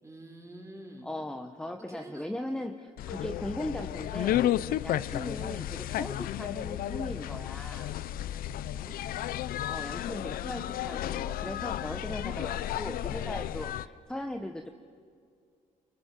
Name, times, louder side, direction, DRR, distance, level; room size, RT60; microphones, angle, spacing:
voice 1, 0.0-1.1 1.9-2.3 8.7-9.0 10.1-10.3, right 1 dB, 20° right, 1 dB, 5.7 m, -48 dB
voice 2, 1.0-4.5 4.8-7.9 9.6-14.7, left 1 dB, 5° left, 5 dB, 1.3 m, -38 dB
sound 1, 3.0-13.9, left 12 dB, 80° left, 0.7 m, -33 dB
29.5 x 24.0 x 7.6 m, 2.3 s
cardioid pair, 100°, 15 cm